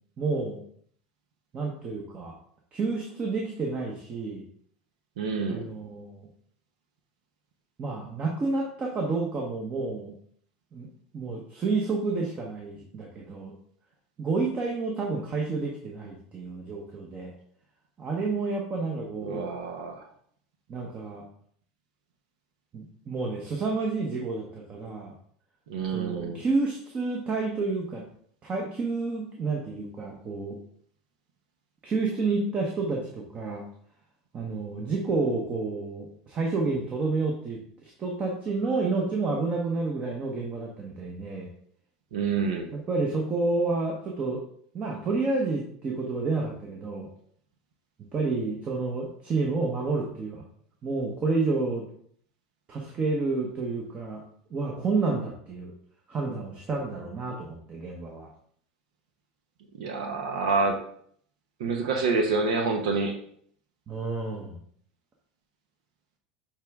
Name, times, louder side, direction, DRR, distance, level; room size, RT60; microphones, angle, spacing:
voice 1, 0.2-0.6 1.5-2.3 2.7-4.4 5.5-6.3 7.8-10.1 10.7-10.9 11.1-13.5 14.2-17.3 18.0-19.4 20.7-21.2 22.7-25.1 25.9-28.0 28.4-30.6 31.8-33.6 34.3-41.5 42.7-44.5 44.7-47.1 48.1-50.4 50.8-51.8 52.7-54.2 54.5-55.7 56.1-58.3 63.9-64.6, right 3 dB, 35° right, 0 dB, 1.2 m, -30 dB
voice 2, 5.2-5.7 19.2-20.1 25.7-26.4 42.1-42.7 59.7-60.8 61.6-63.2, right 4 dB, 75° right, 3 dB, 0.9 m, -27 dB
7.3 x 3.6 x 3.6 m, 0.63 s
hypercardioid pair, 85°, 4 cm